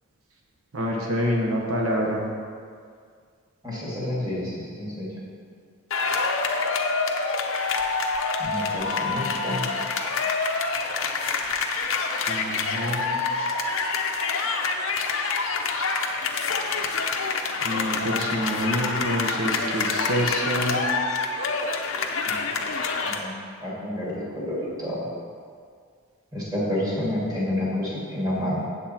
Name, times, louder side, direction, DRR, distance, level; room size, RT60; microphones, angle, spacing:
voice 1, 0.7-2.2 12.3-13.2 17.6-20.9, equal, 90° right, -1 dB, 1.2 m, -27 dB
voice 2, 3.6-5.1 8.4-9.6 22.3-22.4 23.1-25.0 26.3-28.6, left 1 dB, 20° right, -7 dB, 2.3 m, -29 dB
sound 1, 5.9-23.2, left 4 dB, 70° left, 0.7 m, -26 dB
8.4 x 7.4 x 4.3 m, 2.1 s
head